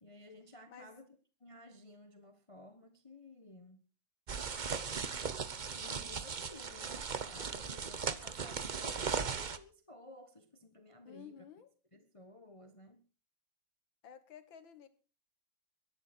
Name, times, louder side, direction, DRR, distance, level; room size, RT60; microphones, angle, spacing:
voice 1, 0.0-1.1 1.4-3.9 5.7-11.4 11.9-13.0, left 1 dB, 20° left, 1.1 m, -55 dB
sound 1, 4.3-9.6, right 5 dB, 45° right, 0.5 m, -38 dB
voice 2, 11.1-11.7 14.0-14.9, left 7 dB, 80° left, 2.2 m, -53 dB
22.5 x 11.0 x 4.4 m
omnidirectional pair, 2.1 m